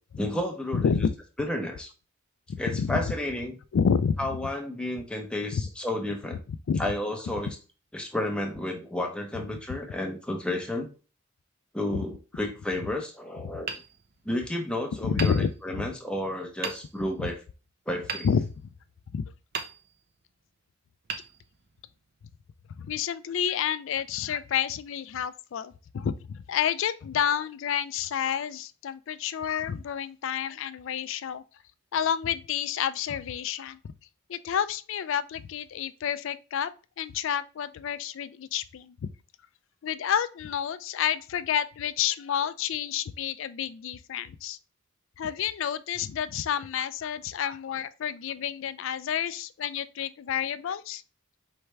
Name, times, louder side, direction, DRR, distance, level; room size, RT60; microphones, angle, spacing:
voice 1, 0.2-1.1 1.4-1.9 2.6-3.5 4.2-6.4 6.8-7.6 7.9-10.9 11.7-13.7 14.2-17.4 17.9-18.3, left 1 dB, 5° left, 0.7 m, -31 dB
voice 2, 0.7-1.1 2.5-3.1 3.7-4.2 5.5-5.6 6.7-6.8 15.0-15.5 15.8-15.9 17.2-17.3 18.2-18.5 19.1-19.3 22.8-31.4 31.9-33.8 34.3-36.7 37.0-39.1 39.8-44.6 45.2-51.0, left 8 dB, 60° left, 0.3 m, -29 dB
Hammer, 13.6-14.6 15.2-16.1 16.6-17.2 18.1-19.0 19.5-20.3 21.0-22.0, right 5 dB, 45° right, 0.5 m, -39 dB
4.6 x 3.3 x 3.2 m
head